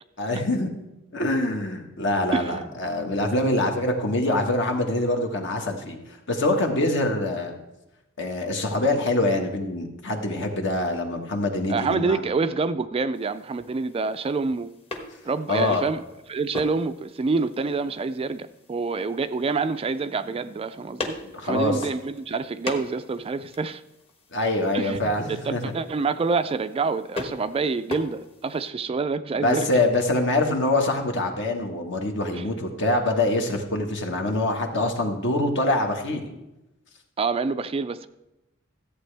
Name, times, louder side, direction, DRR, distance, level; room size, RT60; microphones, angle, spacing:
voice 1, 0.2-0.7 1.1-6.0 6.3-7.5 8.2-12.2 15.5-15.8 21.2-21.8 24.3-25.7 29.4-36.3, left 2 dB, 60° left, 3 dB, 1.5 m, -24 dB
voice 2, 2.3-2.8 11.7-14.7 15.3-16.0 16.3-21.1 21.4-23.8 24.7-29.7 32.3-32.5 37.2-38.1, right 4 dB, 25° right, 12 dB, 0.3 m, -27 dB
sound 1, 13.1-28.7, left 2 dB, 30° left, 1.3 m, -41 dB
14.0 x 8.5 x 3.4 m, 0.95 s
head